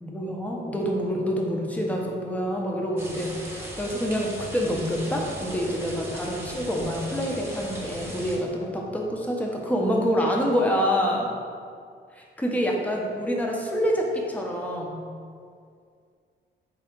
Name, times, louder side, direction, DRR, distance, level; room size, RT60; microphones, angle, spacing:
voice 1, 0.0-11.3 12.1-15.0, equal, 5° left, -1 dB, 0.7 m, -27 dB
sound 1, 3.0-8.4, equal, 10° right, 0.9 m, -38 dB
3.6 x 3.6 x 3.6 m, 2.2 s
cardioid pair, 90°, 20 cm